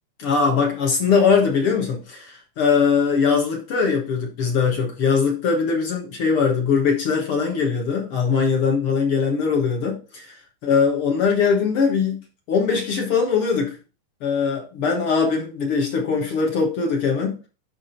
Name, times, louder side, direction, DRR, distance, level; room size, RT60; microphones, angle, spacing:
voice 1, 0.2-12.2 12.5-13.8 14.2-17.4, left 5 dB, 55° left, 1 dB, 1.9 m, -21 dB
10.5 x 3.6 x 4.5 m, 0.34 s
omnidirectional pair, 3.5 m